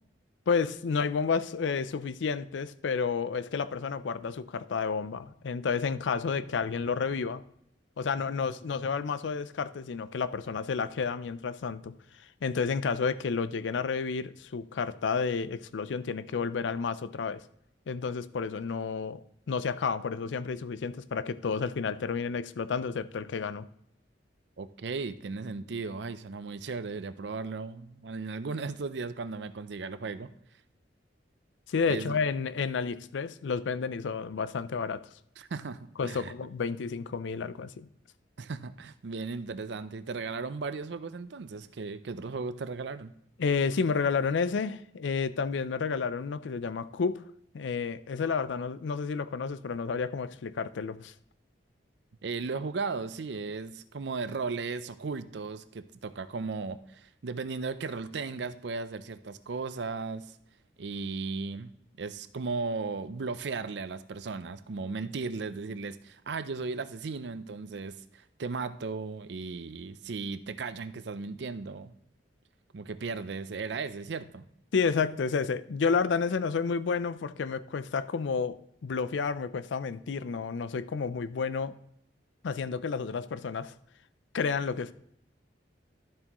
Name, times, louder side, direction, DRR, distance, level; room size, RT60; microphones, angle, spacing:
voice 1, 0.5-7.4 8.0-11.9 12.4-17.4 17.9-23.7 31.7-35.0 36.0-37.9 43.4-47.2 47.5-51.1 74.7-81.8 82.4-83.7 84.3-84.9, left 5 dB, 85° left, 0.4 m, -31 dB
voice 2, 24.6-30.3 31.9-32.2 35.4-36.3 38.4-43.1 52.2-60.4 60.8-61.7 62.0-71.9 72.7-74.5, right 4 dB, 70° right, 0.5 m, -36 dB
12.0 x 7.4 x 3.0 m
head